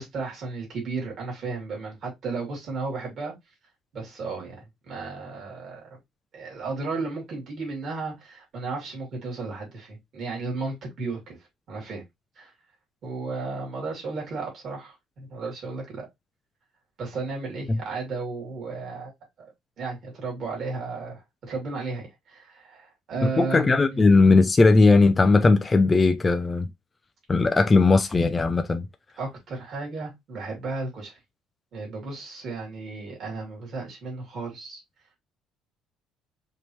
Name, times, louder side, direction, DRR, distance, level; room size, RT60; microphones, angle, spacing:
voice 1, 0.0-3.3 3.9-6.0 6.3-11.4 11.7-12.0 12.4-12.5 13.0-16.1 17.0-19.1 19.4-24.0 29.2-31.2 31.7-34.8, right 3 dB, 35° right, 2.7 m, -34 dB
voice 2, 23.4-26.7 27.3-28.9, left 3 dB, 15° left, 0.3 m, -18 dB
5.1 x 3.0 x 3.0 m
cardioid pair, 180°, 0 cm